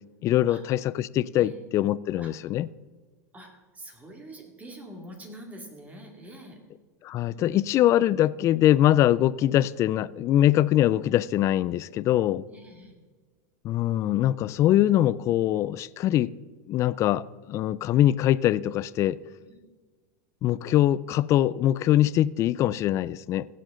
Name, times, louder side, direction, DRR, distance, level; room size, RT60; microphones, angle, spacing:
voice 1, 0.2-2.7 7.0-12.4 13.6-16.3 16.7-19.2 20.4-23.5, left 13 dB, 35° left, 0.3 m, -23 dB
voice 2, 1.3-1.6 2.2-2.3 3.3-6.6 7.3-7.6 11.7-11.9 12.5-13.0 19.5-19.6, right 1 dB, 15° right, 2.4 m, -45 dB
16.5 x 7.7 x 3.8 m
supercardioid pair, 125°, 9 cm